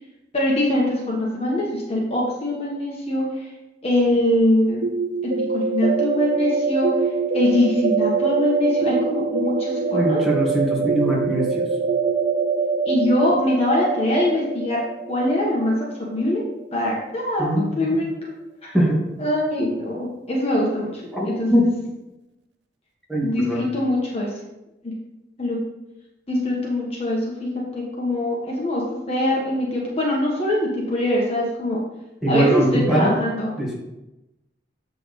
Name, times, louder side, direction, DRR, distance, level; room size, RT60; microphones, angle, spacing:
voice 1, 0.3-3.5 3.8-4.9 5.2-6.9 7.3-10.2 12.8-14.8 15.1-16.4 16.7-17.5 17.7-18.3 18.6-18.7 19.2-21.6 23.2-24.3 24.8-24.9 25.4-25.6 26.3-28.8 29.1-31.8 32.3-33.5, left 1 dB, 35° left, -4 dB, 1.4 m, -23 dB
sound 1, 4.8-16.5, right 5 dB, 70° right, 0.4 m, -24 dB
voice 2, 9.9-11.7 17.4-17.7 18.7-19.0 21.1-21.7 23.1-23.6 32.2-33.2 33.6-33.8, right 1 dB, ahead, -6 dB, 1.9 m, -21 dB
7.6 x 6.3 x 3.3 m, 0.96 s
head